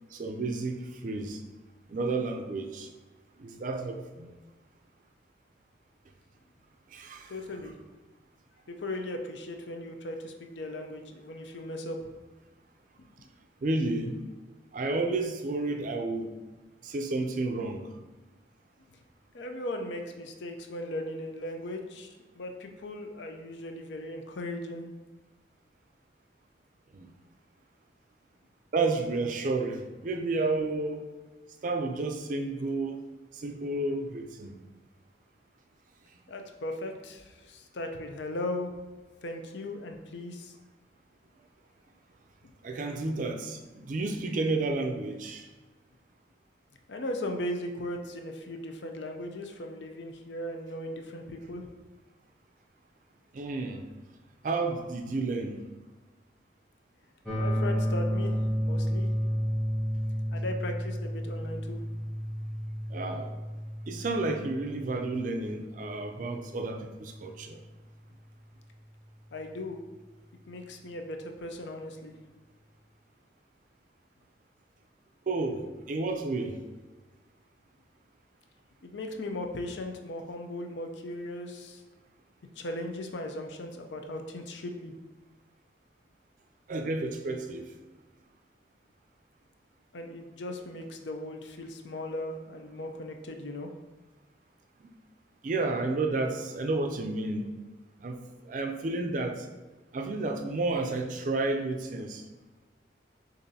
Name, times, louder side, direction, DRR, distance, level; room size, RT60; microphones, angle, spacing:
voice 1, 0.1-1.4 1.9-2.9 3.4-4.3 6.9-7.3 13.6-14.2 14.7-16.3 16.8-17.9 26.9-27.1 28.7-31.0 31.6-33.0 33.3-34.6 42.6-45.5 53.3-53.8 54.4-55.6 62.9-63.3 63.9-67.6 75.3-76.6 86.7-87.6 94.8-94.9 95.4-97.5 98.0-99.5 99.9-102.2, right 3 dB, 45° right, 4 dB, 0.4 m, -31 dB
voice 2, 7.3-7.7 8.7-12.1 13.2-13.3 18.9-19.0 19.3-24.9 36.3-38.7 39.2-40.6 42.4-42.5 46.9-51.7 57.3-58.4 58.6-59.1 60.3-61.8 69.3-69.8 70.5-72.2 78.8-81.8 82.6-84.9 89.9-93.7, left 1 dB, 75° left, 5 dB, 0.5 m, -37 dB
sound 1, 57.3-67.2, equal, 5° left, 0.8 m, -32 dB
6.7 x 2.6 x 2.7 m, 1.2 s
head